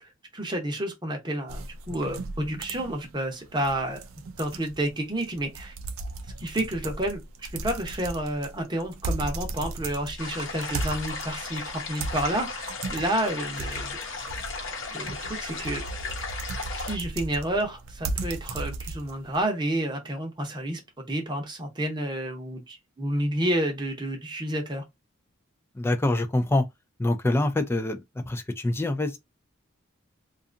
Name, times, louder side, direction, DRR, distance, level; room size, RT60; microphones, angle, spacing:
voice 1, 0.0-4.0 4.4-5.7 6.4-14.0 14.9-15.8 16.7-24.8, right 1 dB, 20° right, 0.8 m, -30 dB
sound 1, 1.5-19.4, right 3 dB, 85° right, 0.4 m, -36 dB
sound 2, 10.2-17.0, left 4 dB, 65° left, 0.9 m, -35 dB
voice 2, 25.8-26.6 27.0-28.0 28.3-29.2, left 2 dB, 10° left, 0.3 m, -25 dB
2.6 x 2.4 x 2.5 m
head